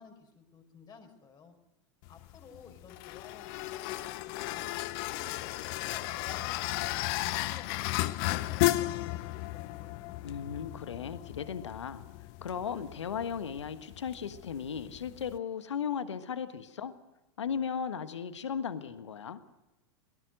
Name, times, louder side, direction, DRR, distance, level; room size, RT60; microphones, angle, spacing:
voice 1, 0.0-1.5 2.1-5.2 5.6-9.9, left 5 dB, 30° left, 5 dB, 4.9 m, -54 dB
sound 1, 2.0-15.4, left 18 dB, 50° left, 0.9 m, -35 dB
voice 2, 10.2-12.0 12.4-16.9 17.4-19.4, left 7 dB, 80° left, 11 dB, 1.4 m, -36 dB
22.5 x 19.0 x 6.4 m, 0.98 s
hypercardioid pair, 95°, 15 cm